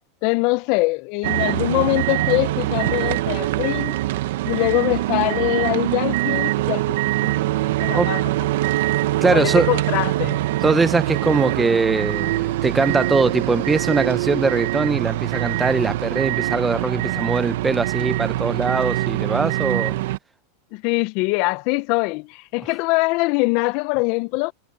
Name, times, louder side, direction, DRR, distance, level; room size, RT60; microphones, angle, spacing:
voice 1, 0.2-4.0 4.4-8.3 9.2-10.4 20.7-24.5, left 25 dB, 50° left, 0.5 m, -23 dB
sound 1, 1.2-20.2, right 16 dB, 70° right, 0.9 m, -23 dB
voice 2, 9.2-9.7 10.6-20.0, right 3 dB, 10° right, 0.6 m, -21 dB
supercardioid pair, 130°, 0 cm